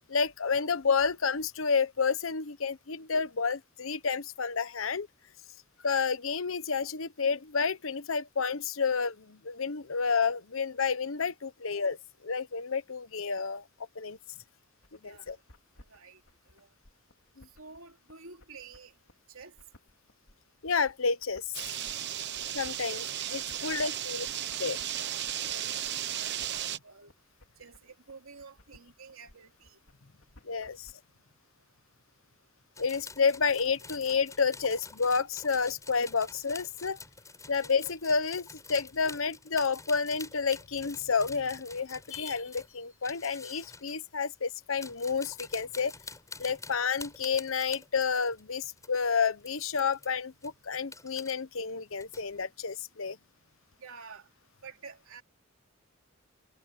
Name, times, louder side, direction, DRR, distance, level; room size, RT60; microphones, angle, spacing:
voice 1, 0.1-5.1 5.8-12.0 12.2-13.6 14.0-14.2 15.0-15.4 17.4-17.5 20.6-21.5 22.5-23.0 23.3-24.3 24.6-24.8 30.4-30.9 32.8-37.0 37.5-45.9 46.4-53.2, left 5 dB, 70° left, 1.0 m, -30 dB
sound 1, 14.8-30.9, left 1 dB, 90° left, 3.2 m, -59 dB
voice 2, 15.0-15.4 15.9-16.2 16.5-16.7 17.6-18.9 19.3-19.5 22.2-22.4 22.9-24.2 24.9-27.1 27.6-29.8 53.8-54.3 54.6-55.2, right 5 dB, 80° right, 3.1 m, -50 dB
sound 2, 21.5-26.8, right 11 dB, 55° right, 1.1 m, -35 dB
sound 3, 32.7-44.0 44.6-49.0 49.4-50.1 50.4-51.3 51.7-52.4, left 3 dB, 15° left, 7.6 m, -48 dB
head